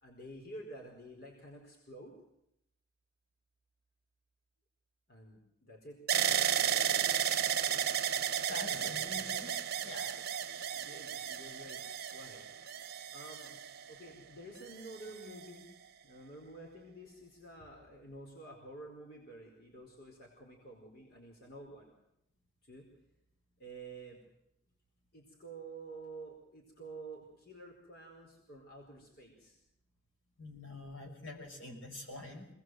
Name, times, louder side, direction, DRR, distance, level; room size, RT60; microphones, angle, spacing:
voice 1, 0.0-2.1 5.1-6.0 7.7-7.8 8.7-9.0 10.8-11.8 12.1-12.4 13.1-13.6 13.9-15.7 16.0-21.9 22.7-22.8 23.6-24.2 25.1-29.5, right 2 dB, 50° left, 0 dB, 4.6 m, -50 dB
sound 1, 6.1-14.1 14.8-15.5, right 9 dB, 50° right, 1.4 m, -33 dB
voice 2, 8.5-9.6 9.8-10.4 30.4-32.5, left 1 dB, 65° left, 2 dB, 5.6 m, -46 dB
25.5 x 20.0 x 7.8 m, 0.81 s
head